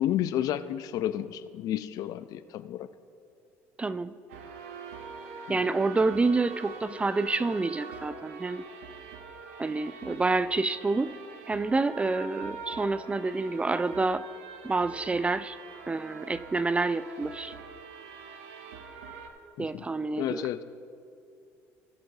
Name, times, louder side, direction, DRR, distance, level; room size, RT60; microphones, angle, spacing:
voice 1, 0.0-2.9 5.5-5.6 19.6-19.8 20.2-20.6, left 12 dB, 60° left, 13 dB, 0.4 m, -31 dB
voice 2, 3.8-4.1 5.5-8.7 9.6-11.2 11.5-14.2 14.6-15.6 15.9-17.5 19.6-20.5, right 3 dB, 15° right, 15 dB, 0.3 m, -28 dB
sound 1, 4.3-19.3, right 5 dB, 85° right, 0.9 m, -44 dB
18.0 x 7.4 x 2.7 m, 2.5 s
hypercardioid pair, 75°, 7 cm